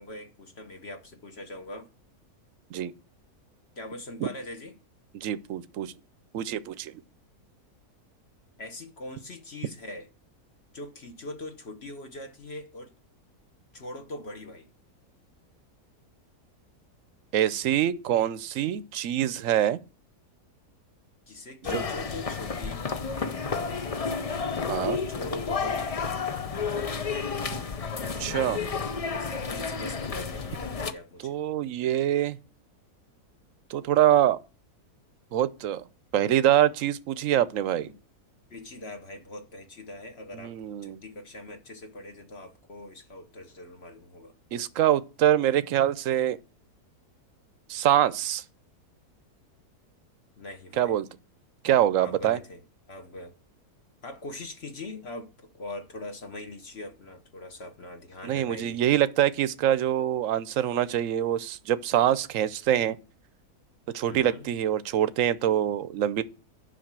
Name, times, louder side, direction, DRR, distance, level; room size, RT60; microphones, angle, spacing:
voice 1, 0.0-1.9 3.8-4.7 8.6-10.1 10.7-12.9 13.7-14.7 21.3-22.9 24.9-25.9 29.1-31.4 37.8-38.0 38.5-40.6 40.8-44.3 50.4-51.1 52.0-52.6 52.9-53.3 54.0-58.8 64.1-64.5, left 2 dB, 45° left, 1.4 m, -42 dB
voice 2, 5.1-5.9 6.3-7.0 17.3-19.8 21.7-21.8 24.7-25.0 27.5-27.6 28.2-28.6 31.2-32.4 33.7-34.4 35.3-35.8 36.1-37.9 40.3-41.0 44.5-46.4 47.7-48.4 50.8-51.1 51.6-52.4 58.2-63.0 63.9-66.2, right 11 dB, 60° right, 1.0 m, -25 dB
sound 1, 21.6-30.9, left 5 dB, 70° left, 0.3 m, -31 dB
10.5 x 5.8 x 7.5 m
omnidirectional pair, 1.7 m